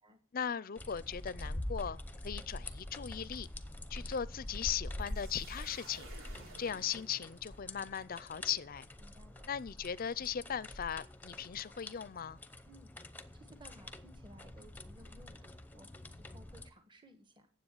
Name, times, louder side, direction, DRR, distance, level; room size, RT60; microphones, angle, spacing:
voice 1, 0.3-3.5 3.9-6.1 6.6-8.8 9.5-12.4, left 8 dB, 45° left, 0.5 m, -38 dB
sound 1, 0.8-16.7, left 1 dB, 10° left, 0.7 m, -46 dB
sound 2, 5.0-7.8, right 3 dB, 90° right, 3.6 m, -55 dB
voice 2, 9.0-9.5 12.6-15.9 16.1-17.5, right 1 dB, 25° right, 1.4 m, -59 dB
9.7 x 7.7 x 8.8 m
head